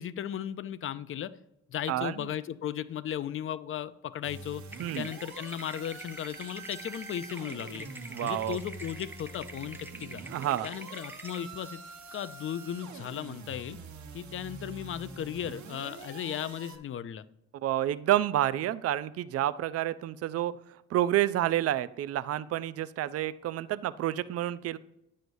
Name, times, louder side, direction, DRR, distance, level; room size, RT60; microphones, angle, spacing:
voice 1, 0.0-1.3 1.7-4.6 5.0-7.9 8.2-10.2 10.6-11.8 12.1-13.8 14.1-17.2, left 10 dB, 45° left, 15 dB, 0.5 m, -36 dB
voice 2, 1.9-2.3 4.8-5.1 8.1-8.6 10.3-10.7 17.6-20.5 20.9-24.8, right 13 dB, 55° right, 15 dB, 0.4 m, -29 dB
sound 1, 4.2-16.8, right 4 dB, 70° right, 1.2 m, -46 dB
sound 2, 4.7-11.4, right 2 dB, 5° right, 0.7 m, -46 dB
9.2 x 6.3 x 2.6 m, 0.84 s
cardioid pair, 90°, 30 cm